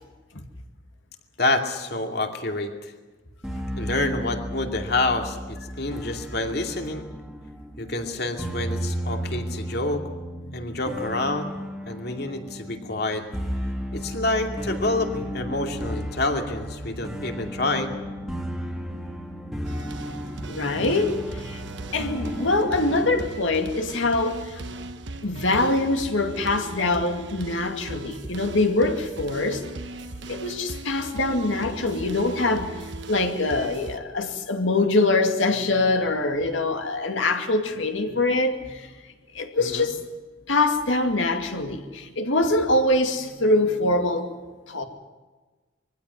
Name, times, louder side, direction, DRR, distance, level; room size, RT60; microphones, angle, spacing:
voice 1, 1.4-2.9 3.8-7.1 7.8-10.0 10.5-11.5 11.9-13.2 13.9-18.0 39.6-39.9, left 2 dB, 55° left, 4 dB, 2.5 m, -27 dB
sound 1, 3.4-23.2, equal, ahead, 1.9 m, -34 dB
sound 2, 19.6-34.0, right 2 dB, 60° right, 1.2 m, -38 dB
voice 2, 20.5-21.6 21.9-24.6 25.2-29.6 30.3-32.7 33.1-38.9 39.3-40.0 40.5-44.3 44.7-44.8, left 2 dB, 75° left, 5 dB, 2.3 m, -24 dB
23.0 x 15.5 x 9.6 m, 1.3 s
head